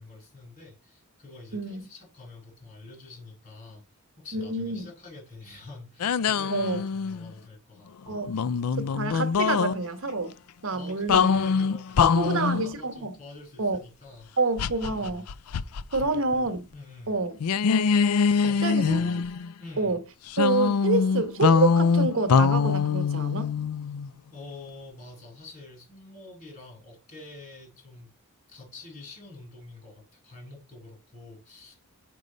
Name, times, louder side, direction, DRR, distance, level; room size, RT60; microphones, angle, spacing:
voice 1, 0.0-9.0 10.7-14.3 14.9-15.2 15.6-15.7 16.0-17.2 18.4-19.1 19.6-20.0 24.3-28.1 28.5-31.7, left 2 dB, 40° left, 4.7 m, -46 dB
voice 2, 1.5-1.9 4.3-4.9 6.5-6.8 8.1-8.3 8.8-10.3 10.6-11.3 12.1-13.2 13.6-13.8 14.4-15.2 15.9-16.7 17.1-17.4 18.6-19.2 19.8-20.0 20.4-23.5, right 3 dB, 60° right, 1.1 m, -27 dB
sound 1, 6.0-7.3 8.3-9.8 11.1-12.7 14.6-16.0 16.3-16.5 17.4-19.5 20.3-24.1, left 5 dB, 80° left, 0.4 m, -23 dB
6.2 x 5.4 x 5.2 m
head